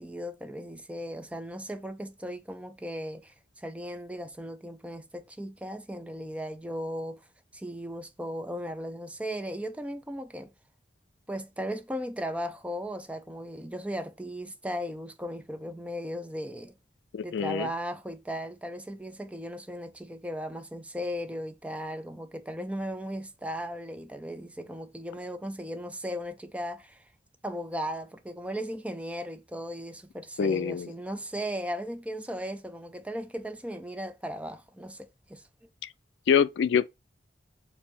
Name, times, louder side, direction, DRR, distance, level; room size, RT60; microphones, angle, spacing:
voice 1, 0.0-7.2 7.5-10.5 11.3-16.7 17.2-27.0 27.4-35.4, equal, 5° right, 0.5 m, -37 dB
voice 2, 17.1-17.7 30.4-30.9 36.3-36.9, left 7 dB, 75° left, 0.3 m, -25 dB
4.7 x 2.7 x 3.2 m
head